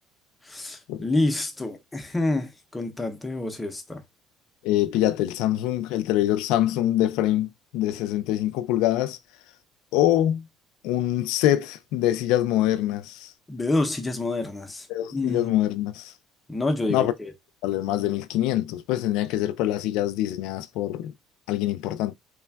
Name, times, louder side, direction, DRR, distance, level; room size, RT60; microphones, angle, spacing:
voice 1, 0.4-4.0 13.5-14.9 15.1-15.5 16.5-17.3, left 2 dB, 10° left, 0.5 m, -28 dB
voice 2, 4.6-9.2 9.9-10.4 10.8-13.3 14.9-16.1 16.9-17.1 17.6-21.1 21.5-22.1, left 13 dB, 80° left, 0.3 m, -24 dB
3.2 x 2.1 x 2.2 m
cardioid pair, 150°, 0 cm